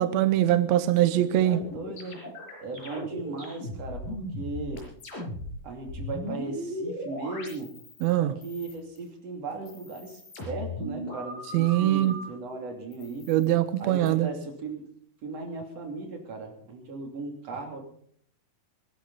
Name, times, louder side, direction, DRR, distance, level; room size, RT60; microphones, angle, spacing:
voice 1, 0.0-1.6 8.0-8.3 11.5-12.1 13.3-14.3, right 13 dB, 85° right, 1.5 m, -22 dB
voice 2, 1.1-2.2 2.6-4.8 5.6-7.7 8.2-13.3 13.8-14.9 15.2-17.8, right 3 dB, 45° right, 3.8 m, -37 dB
sound 1, 1.6-8.1 8.4-9.1 9.5-12.2 12.9-14.1, left 1 dB, 70° left, 7.1 m, -38 dB
24.0 x 11.5 x 4.1 m
omnidirectional pair, 4.2 m